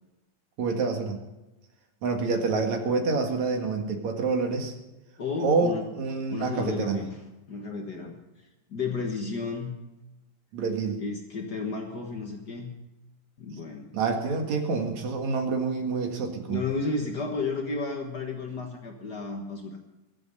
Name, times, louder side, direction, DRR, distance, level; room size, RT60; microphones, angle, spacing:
voice 1, 0.6-1.2 2.0-4.7 5.4-7.0 10.5-11.0 13.9-16.6, right 4 dB, 55° right, 3 dB, 2.9 m, -27 dB
voice 2, 5.2-5.8 6.3-7.2 7.5-8.1 8.7-9.7 11.0-12.7 13.4-13.9 16.5-19.8, left 4 dB, 65° left, 2 dB, 1.0 m, -32 dB
23.5 x 8.1 x 5.5 m, 1.0 s
omnidirectional pair, 4.1 m